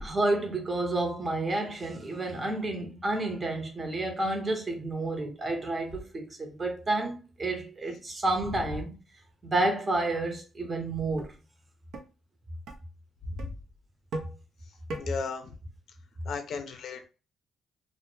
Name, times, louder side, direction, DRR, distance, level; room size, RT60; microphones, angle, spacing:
voice 1, 0.0-8.9 9.4-11.3, right 2 dB, 30° right, 0.7 m, -30 dB
sound 1, 10.6-10.7 11.2-11.3 11.9-12.1 12.7-12.8 13.4-13.5 14.1-14.4 14.9-15.0, right 2 dB, 75° right, 0.5 m, -37 dB
voice 2, 15.0-15.5 16.3-17.1, left 5 dB, 60° left, 0.4 m, -35 dB
2.1 x 2.0 x 3.0 m
cardioid pair, 90°, 0 cm